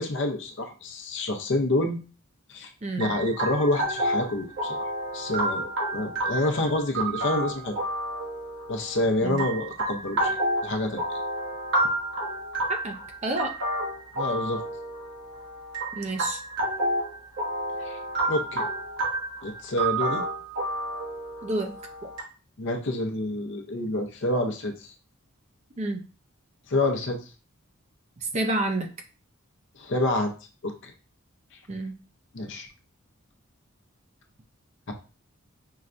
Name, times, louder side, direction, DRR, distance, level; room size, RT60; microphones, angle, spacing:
voice 1, 0.0-2.0 2.5-2.7 3.0-4.9 5.1-7.8 8.7-10.4 10.6-11.2 14.2-14.6 17.8-18.0 18.3-18.7 19.4-20.2 22.6-24.9 26.7-27.2 29.7-30.3 30.6-30.9 32.3-32.7 34.9-35.0, left 1 dB, 60° left, 3 dB, 0.7 m, -28 dB
voice 2, 2.8-3.1 9.2-9.4 12.7-12.9 13.2-13.5 16.0-16.4 21.4-21.7 22.0-22.1 25.8-26.0 28.3-28.9 31.7-31.9, right 2 dB, 30° right, 4 dB, 0.5 m, -29 dB
sound 1, 3.0-22.2, right 1 dB, 60° right, 1.1 m, -30 dB
5.5 x 2.2 x 2.5 m, 0.34 s
head